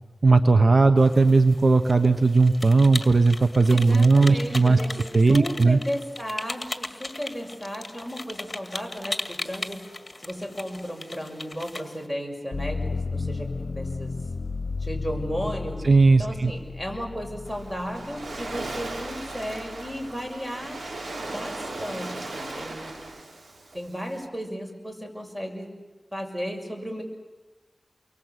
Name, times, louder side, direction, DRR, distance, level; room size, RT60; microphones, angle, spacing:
voice 1, 0.2-4.8 5.1-5.8 15.8-16.5, right 3 dB, 60° right, 8 dB, 1.2 m, -18 dB
sound 1, 1.0-12.1, left 2 dB, 35° left, 1.9 m, -38 dB
voice 2, 3.7-9.9 10.2-14.1 14.8-15.8 16.2-20.8 21.3-22.9 23.7-25.8 26.1-27.0, equal, 10° right, 2 dB, 6.6 m, -34 dB
sound 2, 12.5-20.3 20.8-21.6, left 4 dB, 75° left, 0.8 m, -34 dB
Waves surf, 17.5-24.3, right 2 dB, 85° right, 3.8 m, -37 dB
29.5 x 23.5 x 8.3 m, 1.2 s
wide cardioid pair, 60°, 0 cm